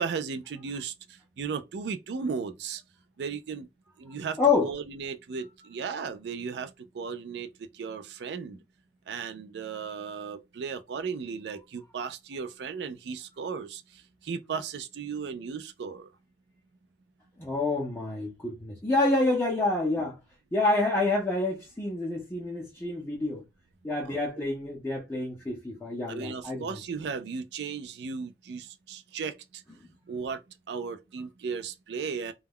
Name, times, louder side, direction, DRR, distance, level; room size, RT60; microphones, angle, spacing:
voice 1, 0.0-2.8 3.2-3.7 4.0-8.6 9.1-16.1 24.1-24.4 26.1-29.6 30.1-30.4 30.7-32.3, right 5 dB, 65° right, 0.4 m, -36 dB
voice 2, 4.4-4.7 17.4-20.2 20.5-23.4 23.8-26.8 29.8-29.9, left 3 dB, 10° left, 0.5 m, -28 dB
2.2 x 2.1 x 3.4 m
head